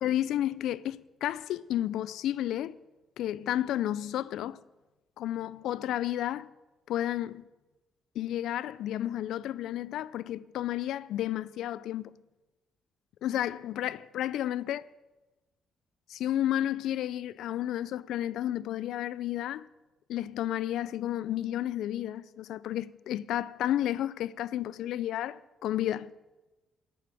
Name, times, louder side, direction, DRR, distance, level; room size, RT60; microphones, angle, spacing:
voice 1, 0.0-2.8 3.2-4.6 5.2-6.5 6.9-7.4 8.2-12.1 13.2-14.9 16.1-19.7 20.1-26.1, left 12 dB, 80° left, 0.4 m, -32 dB
10.0 x 6.9 x 9.1 m
cardioid pair, 90°, 0 cm